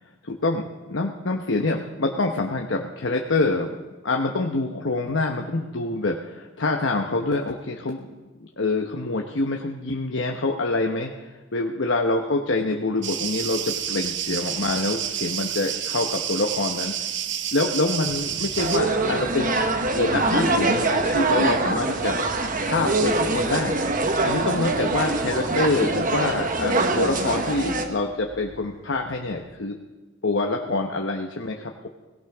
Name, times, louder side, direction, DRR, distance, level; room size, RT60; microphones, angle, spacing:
voice 1, 0.2-0.6 0.9-3.8 4.0-8.1 8.4-16.9 17.5-19.6 19.9-22.1 22.4-23.8 24.2-29.7 30.2-31.9, left 2 dB, 70° left, 2 dB, 1.0 m, -26 dB
sound 1, 13.0-18.8, right 9 dB, 65° right, 0.8 m, -29 dB
sound 2, 18.1-29.5, right 1 dB, 15° right, 1.3 m, -43 dB
sound 3, 18.6-27.9, right 2 dB, 45° right, 1.2 m, -24 dB
18.0 x 17.0 x 3.6 m, 1.2 s
head